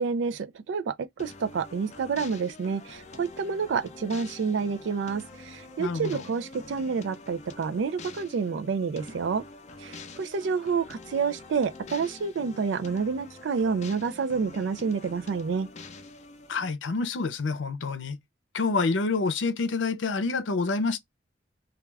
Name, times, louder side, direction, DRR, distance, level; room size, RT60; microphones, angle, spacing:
voice 1, 0.0-9.4 9.8-15.7, right 5 dB, 75° right, 0.4 m, -29 dB
sound 1, 1.2-16.7, left 3 dB, 40° left, 0.5 m, -46 dB
voice 2, 5.8-6.2 16.5-18.2 18.5-21.0, left 4 dB, 90° left, 0.6 m, -27 dB
2.3 x 2.3 x 3.2 m
head